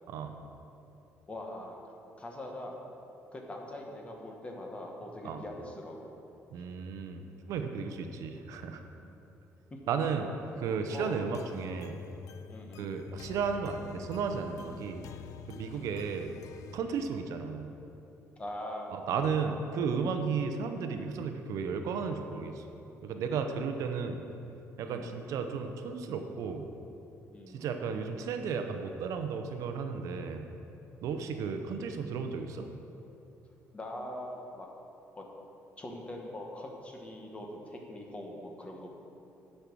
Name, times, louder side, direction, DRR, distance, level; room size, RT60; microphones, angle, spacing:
voice 1, 1.3-1.8 2.2-2.8 3.3-6.1 9.0-9.2 9.7-9.8 10.9-11.2 12.5-13.0 15.7-16.0 16.9-17.1 18.4-19.3 20.4-20.5 24.8-25.1 27.3-27.6 31.4-32.2 33.7-34.7 35.2-35.3 35.8-38.9, left 1 dB, 20° left, 0 dB, 1.4 m, -43 dB
voice 2, 6.5-8.8 9.9-10.3 10.6-12.0 12.8-15.0 15.5-16.3 16.7-17.7 18.9-22.6 23.0-24.2 24.8-26.7 27.5-30.5 31.0-32.7, right 5 dB, 75° right, 6 dB, 0.7 m, -34 dB
sound 1, 10.9-16.8, left 8 dB, 75° left, 0.3 m, -48 dB
10.0 x 5.5 x 6.1 m, 2.9 s
cardioid pair, 120°, 6 cm